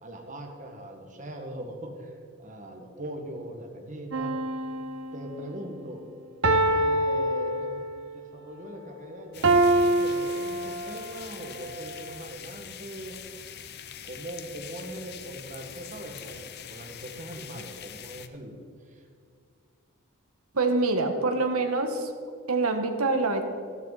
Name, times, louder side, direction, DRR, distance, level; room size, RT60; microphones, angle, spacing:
voice 1, 0.0-4.4 5.1-6.0 6.7-13.2 14.0-18.6 18.9-19.0, right 1 dB, 35° right, 2 dB, 1.7 m, -40 dB
sound 1, 4.1-5.4 6.4-8.1 9.4-11.2 11.8-11.9, right 1 dB, 55° right, 0.7 m, -25 dB
sound 2, 9.3-18.3, left 9 dB, 45° left, 0.6 m, -44 dB
voice 2, 20.5-22.1 22.5-23.5, right 3 dB, 75° right, 5 dB, 1.4 m, -25 dB
14.5 x 13.0 x 4.1 m, 2.2 s
head